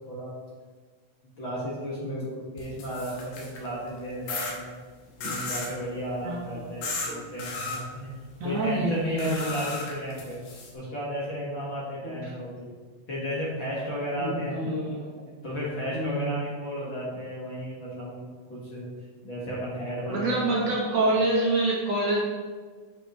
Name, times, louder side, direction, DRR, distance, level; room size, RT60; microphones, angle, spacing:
voice 1, 1.4-4.8 5.2-8.1 8.4-10.4 10.7-12.7 13.1-14.6 15.4-18.2 18.5-18.9 19.2-20.3, equal, 45° left, -7 dB, 1.8 m, -34 dB
sound 1, 2.6-3.7 4.3-4.5 5.2-5.7 6.8-7.1 7.4-7.8 9.2-10.7, left 3 dB, 80° left, 2.9 m, -34 dB
voice 2, 6.2-6.7 7.0-7.2 8.4-9.6 12.0-12.3 14.2-15.4 15.9-16.4 20.1-22.2, right 2 dB, 65° right, -4 dB, 1.8 m, -27 dB
8.8 x 6.5 x 3.0 m, 1.5 s
omnidirectional pair, 3.8 m